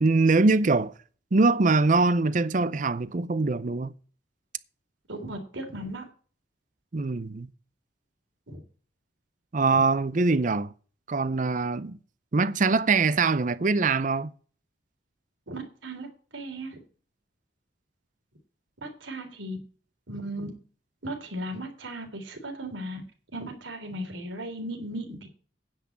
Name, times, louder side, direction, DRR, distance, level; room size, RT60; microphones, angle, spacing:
voice 1, 0.0-0.9 1.3-3.9 6.9-7.5 9.5-10.7 11.1-12.0 12.3-14.3, right 3 dB, 40° right, 0.6 m, -23 dB
voice 2, 5.1-6.0 8.5-8.6 15.5-16.1 16.3-16.8 18.8-19.6 20.1-20.5 21.0-23.0 23.3-25.3, right 1 dB, 80° right, 3.6 m, -36 dB
9.8 x 6.0 x 8.6 m
head